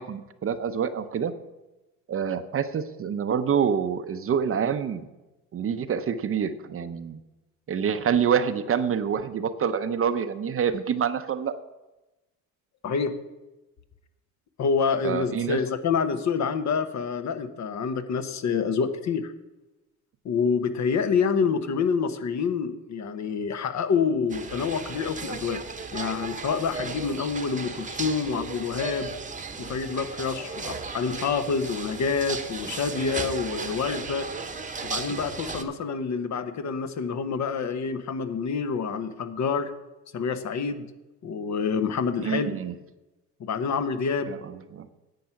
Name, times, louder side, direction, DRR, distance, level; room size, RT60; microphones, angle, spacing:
voice 1, 0.0-1.3 2.1-5.0 5.5-7.2 7.7-11.6 15.0-15.6 42.2-42.7 44.3-44.4 44.7-44.8, right 7 dB, 35° right, 11 dB, 0.7 m, -26 dB
voice 2, 12.8-13.2 14.6-19.3 20.2-25.6 25.9-29.1 29.6-34.3 34.8-39.7 40.1-40.9 41.2-42.5 43.4-44.3, left 5 dB, 50° left, 10 dB, 1.1 m, -27 dB
sound 1, 24.3-35.6, right 4 dB, 20° right, 1.0 m, -35 dB
10.5 x 7.8 x 5.8 m, 1.0 s
supercardioid pair, 90°, 37 cm